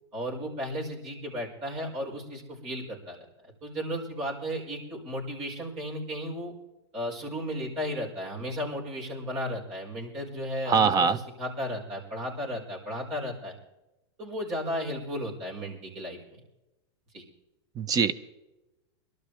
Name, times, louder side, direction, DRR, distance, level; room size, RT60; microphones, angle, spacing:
voice 1, 0.1-3.3 3.6-6.5 6.9-13.6 14.2-16.4 17.1-17.2, equal, 45° right, -2 dB, 5.1 m, -34 dB
voice 2, 10.7-11.2 17.8-18.1, right 5 dB, 25° right, 14 dB, 0.6 m, -22 dB
23.5 x 12.0 x 3.4 m, 0.99 s
hypercardioid pair, 125°, 15 cm